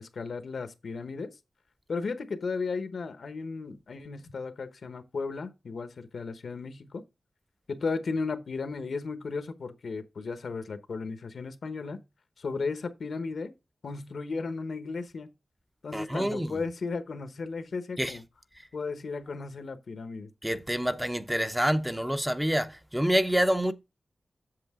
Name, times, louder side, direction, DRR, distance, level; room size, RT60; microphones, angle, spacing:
voice 1, 0.0-1.3 1.9-7.0 7.7-12.0 12.4-13.5 13.8-15.3 15.8-18.2 18.7-20.3, left 4 dB, 85° left, 1.0 m, -35 dB
voice 2, 15.9-16.7 18.0-18.2 20.4-23.7, equal, 5° right, 0.6 m, -27 dB
7.8 x 7.0 x 3.6 m
wide cardioid pair, 105°, 0 cm